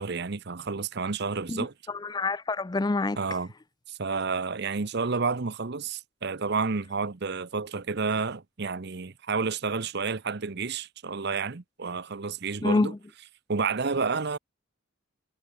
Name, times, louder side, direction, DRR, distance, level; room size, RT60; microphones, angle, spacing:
voice 1, 0.0-1.7 3.2-3.5 3.9-12.9 13.5-14.4, right 4 dB, 50° right, 0.8 m, -30 dB
voice 2, 1.5-3.2 12.6-12.9, left 2 dB, 20° left, 0.4 m, -27 dB
head